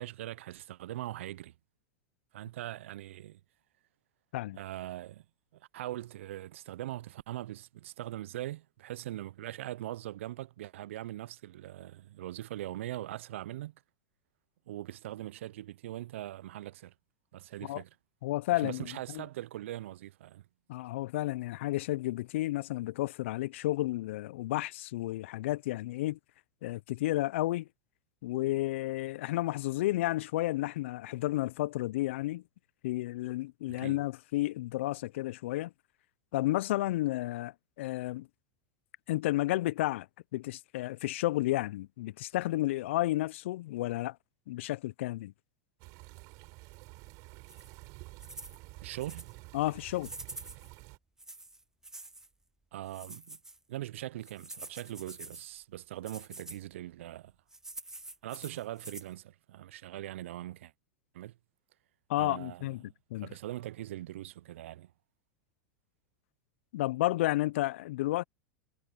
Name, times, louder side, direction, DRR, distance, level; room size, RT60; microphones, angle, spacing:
voice 1, 0.0-1.5 2.3-3.4 4.5-5.2 5.5-13.7 14.7-16.9 17.3-17.9 18.5-20.4 33.7-34.0 48.8-49.3 52.7-53.4 53.7-57.3 58.2-60.7 61.1-61.3 62.1-62.9 63.2-64.9, right 14 dB, 70° right, 0.9 m, -41 dB
voice 2, 18.2-19.2 20.7-26.2 26.6-27.7 28.2-32.4 32.8-35.7 36.3-38.3 39.1-40.1 40.3-44.2 44.5-45.3 49.5-50.1 62.1-62.8 63.1-63.3 66.7-68.2, left 17 dB, 65° left, 0.8 m, -32 dB
sound 1, 45.8-51.0, right 25 dB, 50° right, 5.8 m, -50 dB
sound 2, 47.5-47.8 48.2-48.6 49.0-49.3 50.0-50.7 51.2-52.3 52.9-53.6 54.2-55.5 56.1-56.6 57.5-59.1, right 2 dB, 5° right, 1.7 m, -47 dB
hypercardioid pair, 95°, 7 cm